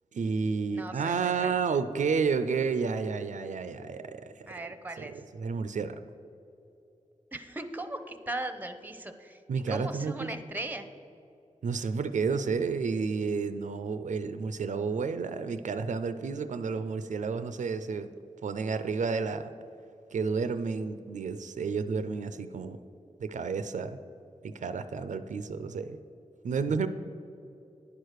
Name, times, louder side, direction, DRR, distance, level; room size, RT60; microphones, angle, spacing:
voice 1, 0.1-4.5 5.0-5.1 5.4-6.0 9.5-10.3 11.6-18.1 18.4-19.5 20.1-22.8 23.2-24.0 24.4-26.0 26.4-26.9, right 5 dB, 85° right, 11 dB, 0.4 m, -31 dB
voice 2, 0.7-1.5 4.5-5.2 7.3-9.4 9.7-10.9, right 2 dB, 15° right, 9 dB, 0.6 m, -38 dB
10.0 x 4.8 x 6.4 m, 2.7 s
wide cardioid pair, 100°, 12 cm